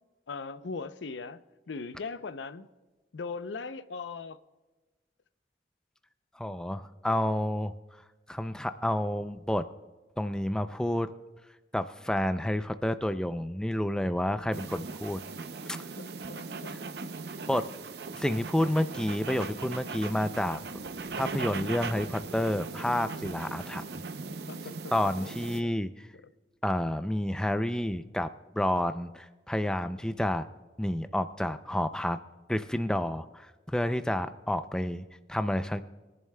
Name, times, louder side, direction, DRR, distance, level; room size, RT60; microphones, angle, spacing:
voice 1, 0.3-1.4 1.7-2.7 3.1-4.4 16.0-16.8 24.5-24.9 25.6-25.7, left 4 dB, 85° left, 0.5 m, -39 dB
voice 2, 6.4-7.7 8.3-9.6 10.2-11.1 11.7-15.2 17.5-17.6 18.1-20.6 21.1-23.8 24.9-25.9 26.6-28.3 28.5-30.5 30.8-32.2 32.5-35.8, left 1 dB, 5° left, 0.3 m, -29 dB
sound 1, 14.5-25.6, right 4 dB, 65° right, 0.6 m, -39 dB
22.5 x 11.0 x 2.2 m
head